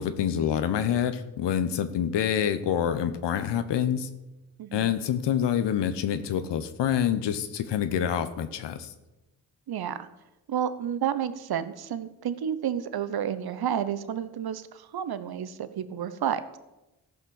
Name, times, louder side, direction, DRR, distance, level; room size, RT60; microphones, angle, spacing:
voice 1, 0.0-4.1 4.7-8.9, left 9 dB, 70° left, 11 dB, 1.0 m, -27 dB
voice 2, 4.6-4.9 9.7-10.1 10.5-16.6, right 9 dB, 60° right, 13 dB, 0.9 m, -31 dB
14.5 x 5.7 x 6.4 m, 1.0 s
supercardioid pair, 45°, 43 cm